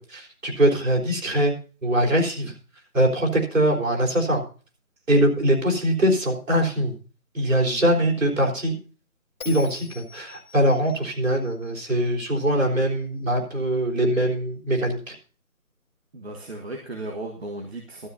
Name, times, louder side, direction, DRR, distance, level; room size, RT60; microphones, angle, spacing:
voice 1, 0.0-1.5 1.8-2.5 2.9-4.4 5.1-6.9 7.3-8.8 9.4-15.1, right 1 dB, 60° right, 0 dB, 4.1 m, -22 dB
Bell, 9.4-12.7, left 6 dB, 25° left, 2.8 m, -46 dB
voice 2, 16.1-18.1, right 2 dB, 45° right, 1 dB, 1.6 m, -35 dB
16.0 x 13.0 x 2.8 m, 0.39 s
figure-of-eight pair, 160°, 44 cm